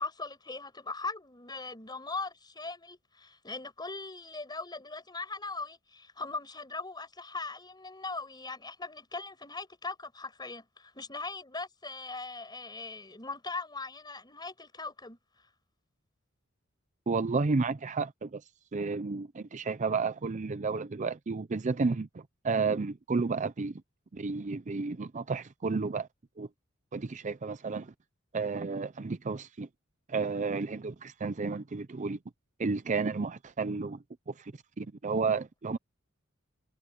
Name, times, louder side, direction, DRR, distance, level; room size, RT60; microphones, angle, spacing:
voice 1, 0.0-15.5, left 3 dB, 20° left, 5.4 m, -40 dB
voice 2, 17.1-18.4 18.7-23.8 24.1-26.1 26.4-26.5 26.9-27.9 28.3-29.7 30.1-32.2 32.6-34.0 34.3-35.8, right 4 dB, 35° right, 0.5 m, -32 dB
head